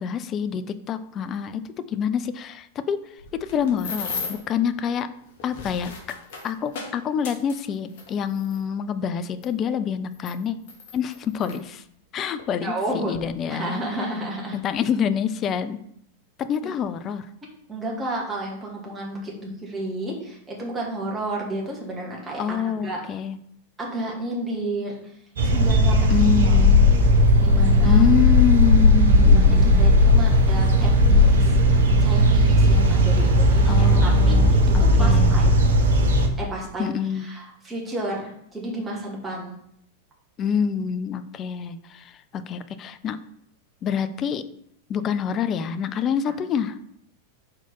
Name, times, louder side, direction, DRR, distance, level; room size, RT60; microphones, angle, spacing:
voice 1, 0.0-3.0 3.3-5.1 5.4-5.9 6.4-10.6 10.9-11.8 12.1-13.8 14.5-15.8 16.4-17.3 22.4-23.4 26.1-26.9 27.9-30.0 33.7-35.5 36.8-37.3 40.4-43.2 43.8-44.4 44.9-46.8, left 8 dB, 30° left, 12 dB, 0.5 m, -26 dB
sound 1, 3.2-4.5 5.3-8.6 9.4-9.5 10.1-11.6 12.4-12.5 12.9-13.2, left 4 dB, 55° left, 1.3 m, -36 dB
voice 2, 12.6-13.1 13.5-14.6 17.7-23.0 23.8-25.0 25.4-26.6 27.4-28.0 29.3-34.4 34.8-35.5 36.4-39.5, right 1 dB, 15° right, -3 dB, 2.1 m, -32 dB
sound 2, 25.4-36.3, left 1 dB, 65° right, 0.9 m, -16 dB
4.5 x 4.4 x 5.5 m, 0.71 s
figure-of-eight pair, 90°, 0 cm